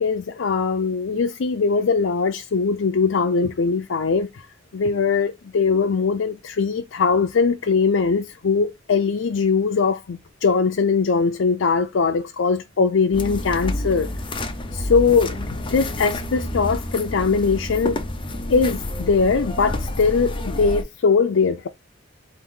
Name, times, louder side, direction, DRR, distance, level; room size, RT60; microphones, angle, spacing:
voice 1, 0.0-4.5 4.7-14.1 14.7-18.0 18.5-21.7, left 5 dB, 75° left, 0.5 m, -21 dB
sound 1, 13.1-20.8, left 1 dB, 25° left, 0.6 m, -29 dB
4.6 x 2.6 x 3.6 m
head